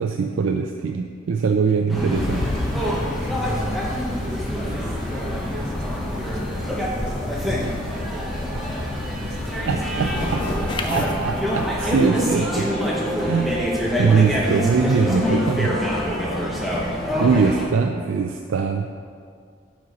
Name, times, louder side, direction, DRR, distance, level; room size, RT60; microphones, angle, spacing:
voice 1, 0.0-2.5 9.7-10.1 10.9-12.7 13.2-13.6 14.0-15.8 17.2-18.9, right 5 dB, 75° right, 4 dB, 0.3 m, -22 dB
sound 1, 1.9-17.6, equal, ahead, 0.7 m, -26 dB
sound 2, 2.1-12.1, left 2 dB, 25° left, 0.3 m, -33 dB
voice 2, 2.7-10.4, right 1 dB, 50° right, -3 dB, 1.3 m, -38 dB
sound 3, 9.7-11.4, left 1 dB, 65° left, 1.3 m, -31 dB
7.6 x 4.1 x 5.2 m, 2.1 s
head